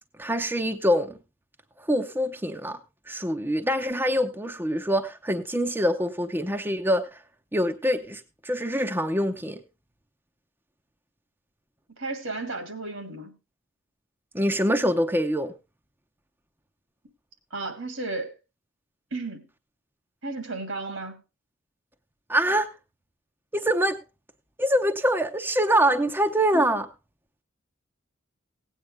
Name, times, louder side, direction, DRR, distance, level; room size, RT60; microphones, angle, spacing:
voice 1, 0.2-1.2 1.9-2.8 3.1-7.2 7.5-9.6 14.3-15.5 22.3-22.7 23.5-24.0 24.6-26.9, equal, 10° right, 6 dB, 0.7 m, -24 dB
voice 2, 12.0-13.4 17.5-18.3 19.1-19.5 20.2-21.2 26.5-26.7, right 3 dB, 75° right, 8 dB, 2.3 m, -33 dB
17.0 x 8.9 x 3.4 m, 0.26 s
head